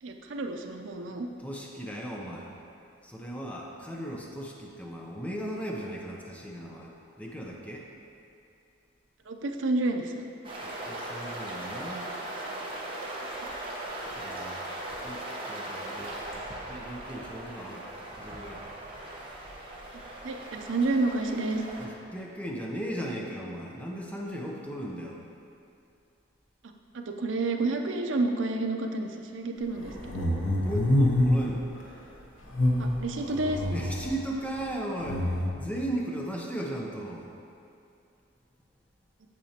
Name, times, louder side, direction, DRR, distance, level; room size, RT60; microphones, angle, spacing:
voice 1, 0.0-1.3 9.3-10.2 13.4-13.5 20.2-21.6 26.9-30.3 32.8-33.6, right 2 dB, 80° right, 4 dB, 0.6 m, -30 dB
voice 2, 1.4-2.5 3.0-7.9 10.6-12.0 14.2-14.6 15.0-16.2 16.7-17.9 18.2-18.6 21.8-25.2 30.6-31.7 33.7-35.2 35.5-37.3, right 1 dB, 5° left, -2 dB, 0.7 m, -36 dB
sound 1, 10.4-21.9, right 1 dB, 25° right, 1.1 m, -39 dB
sound 2, 29.8-31.5 32.5-34.1 35.0-35.5, left 1 dB, 85° left, 1.1 m, -26 dB
8.7 x 7.7 x 2.9 m, 2.6 s
head